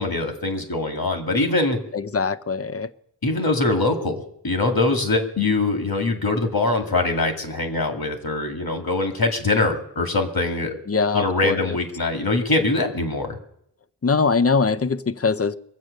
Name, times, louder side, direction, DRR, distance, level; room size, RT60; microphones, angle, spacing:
voice 1, 0.0-1.8 3.2-10.7 11.1-13.4, left 2 dB, 55° left, 2.1 m, -23 dB
voice 2, 1.9-2.9 10.9-11.8 14.0-15.6, left 4 dB, 35° left, 0.6 m, -22 dB
22.5 x 7.8 x 6.5 m
wide cardioid pair, 70°, 43 cm